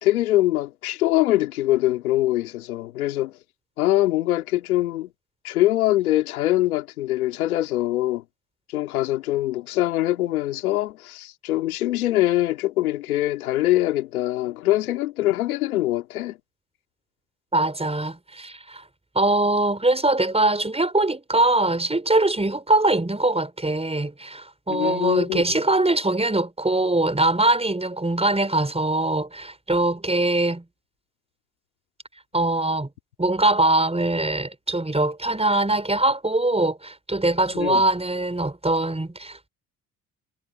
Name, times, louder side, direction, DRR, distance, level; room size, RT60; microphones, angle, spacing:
voice 1, 0.0-3.3 3.8-5.1 5.4-8.2 8.7-16.4 24.7-25.4 37.5-37.8, left 15 dB, 90° left, 3.0 m, -23 dB
voice 2, 17.5-18.8 19.2-30.6 32.3-32.9 33.2-39.5, right 2 dB, 15° right, 5.6 m, -22 dB
hypercardioid pair, 50°, 42 cm